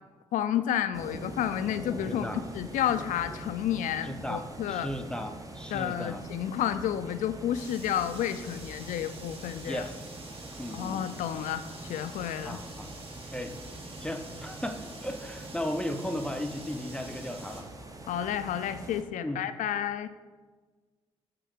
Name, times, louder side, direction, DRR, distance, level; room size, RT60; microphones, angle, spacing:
voice 1, 0.3-4.9 5.7-9.8 10.7-12.6 18.1-20.1, left 10 dB, 60° left, 11 dB, 0.4 m, -31 dB
sound 1, 0.9-19.0, right 2 dB, 25° right, 0.8 m, -44 dB
voice 2, 2.1-2.4 4.0-6.2 9.6-9.9 10.6-11.1 12.4-12.9 13.3-13.6 14.0-17.7 19.2-19.4, left 1 dB, 5° left, 5 dB, 0.6 m, -36 dB
sound 2, 7.5-17.6, right 2 dB, 40° right, 1.2 m, -48 dB
8.7 x 3.1 x 3.6 m, 1.4 s
hypercardioid pair, 40°, 15 cm